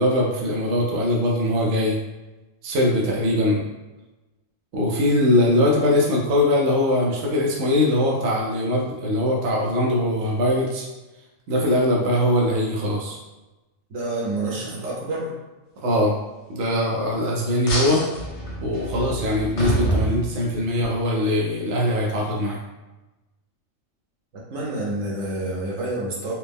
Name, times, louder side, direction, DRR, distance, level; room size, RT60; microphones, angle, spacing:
voice 1, 0.0-2.0 2.6-3.6 4.7-10.9 11.5-13.2 15.8-16.1 16.5-18.0 18.6-22.6, left 1 dB, 65° right, -2 dB, 0.9 m, -21 dB
voice 2, 13.9-15.3 24.3-26.3, right 2 dB, 85° right, -4 dB, 1.4 m, -28 dB
sound 1, 17.7-20.9, right 1 dB, 65° left, 1.1 m, -27 dB
4.3 x 2.0 x 3.4 m, 1.1 s
omnidirectional pair, 1.3 m